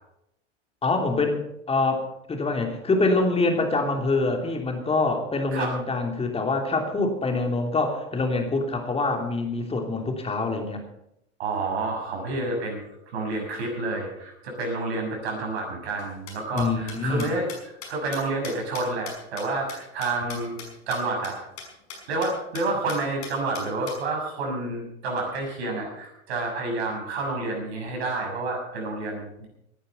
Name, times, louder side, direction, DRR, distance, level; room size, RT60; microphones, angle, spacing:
voice 1, 0.8-10.8 16.5-17.3, left 3 dB, 15° left, 3 dB, 3.0 m, -25 dB
voice 2, 11.4-17.5 17.9-20.6 20.9-21.4 22.1-29.5, right 2 dB, 65° right, 1 dB, 6.5 m, -29 dB
sound 1, 16.0-20.7 20.9-21.0 21.2-21.3 21.6-21.7 21.9-22.3 22.5-22.6 22.9-24.0, left 6 dB, 65° left, 6.0 m, -39 dB
18.5 x 10.5 x 5.6 m, 0.80 s
figure-of-eight pair, 85°, 34 cm